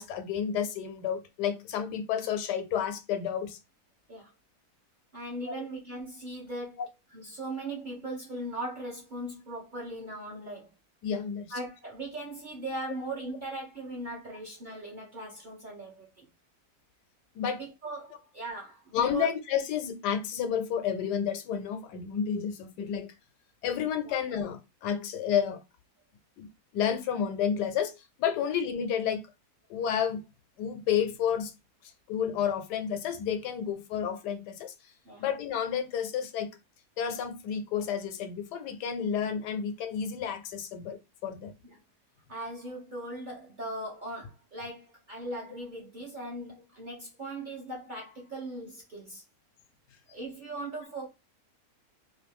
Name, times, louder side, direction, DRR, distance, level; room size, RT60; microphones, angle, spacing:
voice 1, 0.0-3.6 5.5-5.6 11.0-11.5 17.3-17.6 18.9-23.1 23.6-25.6 26.4-26.5 26.7-29.2 29.7-30.2 30.6-31.5 31.8-34.7 35.2-36.6 37.0-41.5, left 8 dB, 85° left, 1.2 m, -31 dB
voice 2, 5.1-6.8 7.1-10.7 11.5-16.3 17.6-19.3 24.0-24.2 35.0-35.3 41.6-41.8 42.3-49.2 50.1-51.1, right 1 dB, 40° right, 0.8 m, -39 dB
3.0 x 2.6 x 3.4 m
omnidirectional pair, 1.7 m